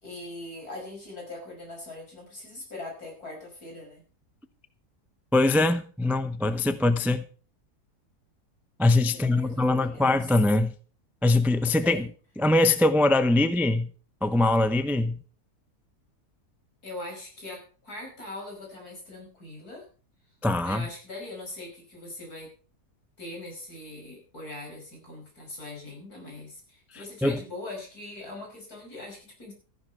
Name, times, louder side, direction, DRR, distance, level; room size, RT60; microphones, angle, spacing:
voice 1, 0.0-4.0 9.1-10.3 11.8-12.1 16.8-19.8 20.6-22.5 23.2-29.5, left 2 dB, 70° left, 1 dB, 6.1 m, -41 dB
voice 2, 5.3-7.2 8.8-10.7 11.2-12.1 12.4-13.9 14.2-15.2 20.4-20.8 27.2-27.4, left 2 dB, ahead, 11 dB, 0.4 m, -22 dB
14.0 x 11.5 x 4.5 m, 0.38 s
omnidirectional pair, 1.7 m